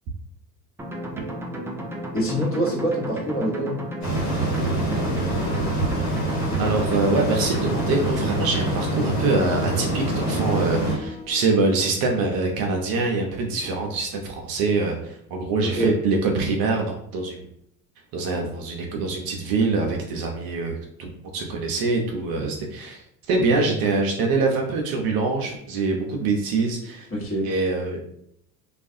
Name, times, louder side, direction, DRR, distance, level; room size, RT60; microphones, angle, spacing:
sound 1, 0.8-8.8, right 1 dB, 5° right, 0.3 m, -33 dB
voice 1, 2.1-3.8 15.6-15.9 27.1-27.5, right 1 dB, 25° left, -3 dB, 1.0 m, -25 dB
sound 2, 4.0-11.0, right 1 dB, 85° left, 1.4 m, -25 dB
sound 3, 4.3-11.9, left 4 dB, 65° left, 0.9 m, -39 dB
voice 2, 6.6-17.4 18.1-20.7 21.0-23.0 23.3-27.1 27.4-28.0, right 3 dB, 45° right, 2 dB, 0.6 m, -24 dB
2.4 x 2.3 x 2.6 m, 0.71 s
hypercardioid pair, 65°, 49 cm